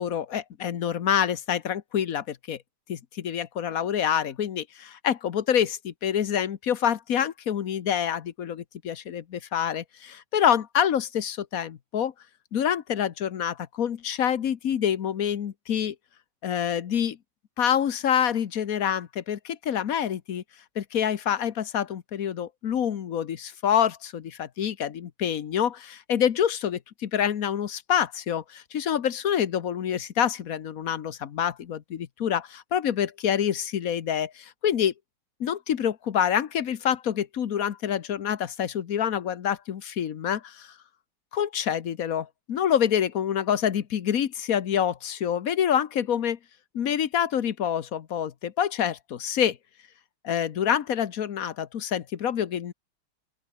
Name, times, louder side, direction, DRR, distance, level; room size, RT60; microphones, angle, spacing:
voice 1, 0.0-2.6 2.9-12.1 12.5-15.9 16.4-17.2 17.6-20.4 20.7-34.9 35.4-40.7 41.3-46.4 46.7-49.6 50.2-52.7, left 9 dB, 50° left, 1.2 m, -27 dB
open air
omnidirectional pair, 2.4 m